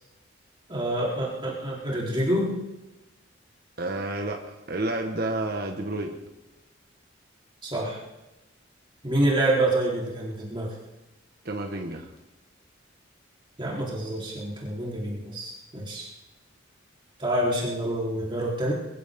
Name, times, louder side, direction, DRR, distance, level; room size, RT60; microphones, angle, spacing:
voice 1, 0.7-2.6 7.6-8.0 9.0-10.8 13.6-16.1 17.2-18.7, right 1 dB, 25° right, -4 dB, 3.8 m, -27 dB
voice 2, 3.8-6.2 11.4-12.1, right 2 dB, 55° right, 2 dB, 1.5 m, -30 dB
22.5 x 14.5 x 3.7 m, 1.0 s
head